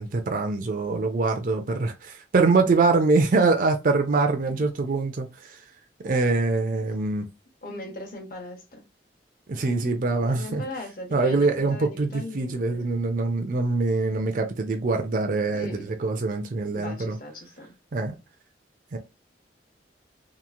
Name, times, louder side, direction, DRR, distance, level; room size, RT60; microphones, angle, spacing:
voice 1, 0.0-5.6 6.0-7.3 9.5-10.6 11.1-17.2 17.9-18.2 18.9-19.0, right 3 dB, 45° right, 0.4 m, -24 dB
voice 2, 7.6-8.8 10.2-12.9 15.5-15.9 16.7-17.7, left 1 dB, 50° left, 0.9 m, -39 dB
2.9 x 2.4 x 2.4 m
head